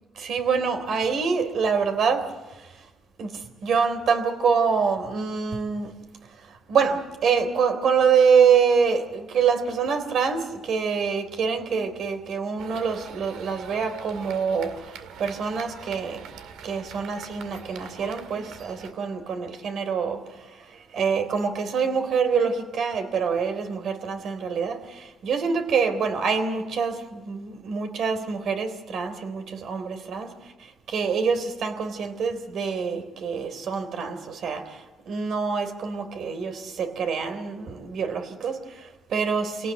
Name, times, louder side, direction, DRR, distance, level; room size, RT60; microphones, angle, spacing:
voice 1, 0.2-2.3 3.2-5.9 6.7-14.9 15.2-16.2 16.6-20.2 20.9-30.3 30.9-34.8 35.1-39.7, right 6 dB, 70° right, 8 dB, 3.6 m, -25 dB
sound 1, 12.6-18.9, right 7 dB, 85° right, 2.0 m, -43 dB
26.0 x 18.0 x 8.1 m, 1.1 s
cardioid pair, 90°, 0 cm